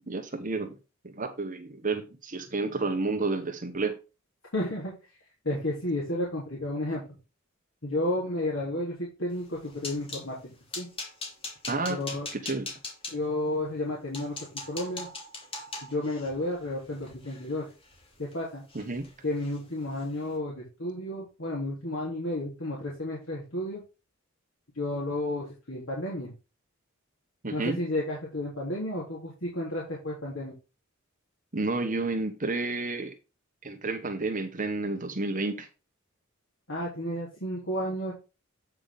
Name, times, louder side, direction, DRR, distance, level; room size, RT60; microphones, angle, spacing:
voice 1, 0.1-0.8 1.0-4.0 11.7-12.0 12.3-12.7 18.7-19.1 27.4-27.8 31.5-33.2 33.6-35.7, right 3 dB, 40° right, 1.3 m, -30 dB
voice 2, 4.5-4.9 5.4-7.0 7.8-10.9 11.9-12.3 13.1-14.4 14.7-15.1 15.9-17.7 18.2-18.6 19.2-23.8 24.8-26.3 27.5-30.5 36.7-38.1, left 1 dB, 75° left, 3.6 m, -32 dB
sound 1, 9.4-10.3 10.7-13.1 13.7-13.8 14.1-18.3 18.7-19.1 19.4-19.6 20.0-20.1, left 3 dB, 30° left, 3.1 m, -40 dB
8.9 x 6.2 x 3.7 m
head